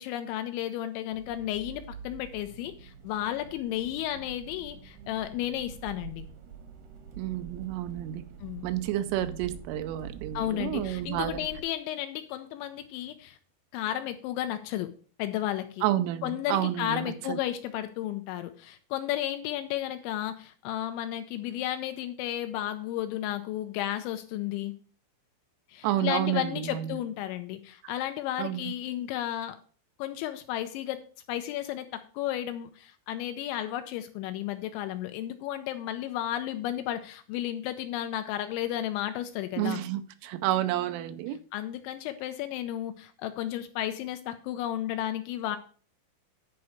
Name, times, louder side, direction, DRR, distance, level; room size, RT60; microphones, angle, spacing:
voice 1, 0.0-6.3 8.4-8.7 10.3-13.4 13.7-14.9 15.2-15.8 16.2-24.7 25.7-29.6 30.0-31.0 31.3-39.8 41.5-45.6, left 12 dB, 80° left, 2.9 m, -33 dB
Accelerating revving vroom, 1.1-11.6, right 7 dB, 65° right, 2.2 m, -46 dB
voice 2, 7.2-8.2 8.6-11.4 15.8-17.4 25.8-27.0 28.4-28.7 39.6-41.4, right 13 dB, 85° right, 3.2 m, -30 dB
10.5 x 4.6 x 6.4 m
omnidirectional pair, 5.6 m